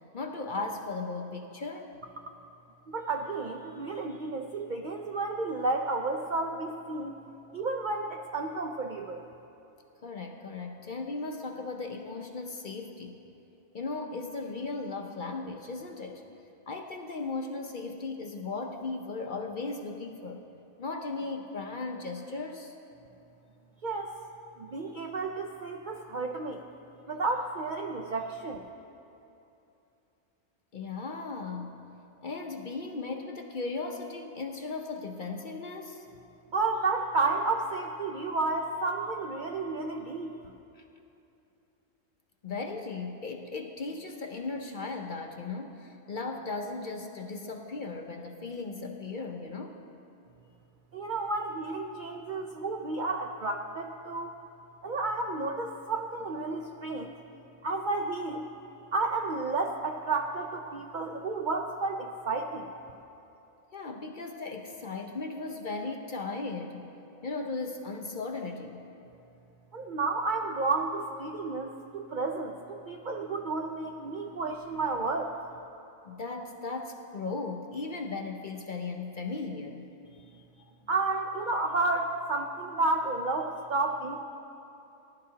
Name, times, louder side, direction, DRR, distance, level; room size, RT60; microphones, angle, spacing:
voice 1, 0.1-1.9 10.0-13.2 13.7-16.2 16.7-20.4 20.8-22.8 30.7-31.8 32.2-36.1 40.8-40.9 42.4-49.8 63.7-66.9 67.2-68.8 76.0-79.9, left 3 dB, 50° left, 3 dB, 0.6 m, -37 dB
voice 2, 2.9-7.2 7.5-9.2 23.8-24.1 24.6-26.6 27.1-28.6 36.5-40.3 50.9-54.3 54.8-57.1 57.6-58.5 58.9-62.7 69.7-75.3 80.9-84.2, right 3 dB, 60° right, 2 dB, 0.5 m, -31 dB
19.0 x 11.5 x 2.8 m, 2.8 s
omnidirectional pair, 1.4 m